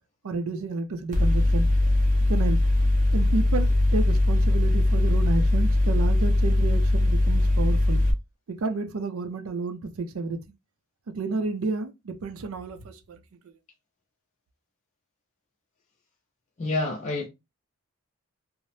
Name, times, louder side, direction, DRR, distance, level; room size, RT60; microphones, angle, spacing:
voice 1, 0.2-1.7 2.3-2.6 3.1-8.0 8.6-10.4 11.1-13.0, right 3 dB, 85° right, 0.5 m, -30 dB
Mechanical fan, 1.1-8.1, left 1 dB, 40° right, 0.6 m, -21 dB
voice 2, 16.6-17.3, left 2 dB, 35° left, 0.4 m, -28 dB
2.7 x 2.0 x 3.1 m
head